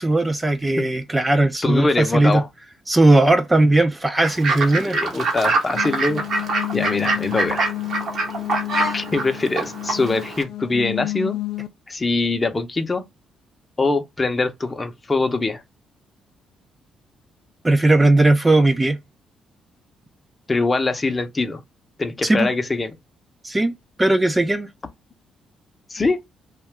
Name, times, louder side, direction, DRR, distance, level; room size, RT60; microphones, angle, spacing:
voice 1, 0.0-2.4 2.9-5.0 17.6-19.0 22.2-22.5 23.4-24.7, right 2 dB, 15° right, 0.4 m, -18 dB
voice 2, 1.6-2.5 4.7-6.2 6.7-7.6 8.9-11.4 11.9-13.0 13.8-15.6 20.5-21.6 22.0-23.0 25.9-26.2, left 3 dB, 25° left, 0.6 m, -23 dB
Fowl / Bird, 4.2-10.4, right 3 dB, 60° right, 0.9 m, -25 dB
sound 1, 5.7-11.7, left 17 dB, 80° left, 0.4 m, -30 dB
2.6 x 2.3 x 3.2 m
cardioid pair, 90°, 0 cm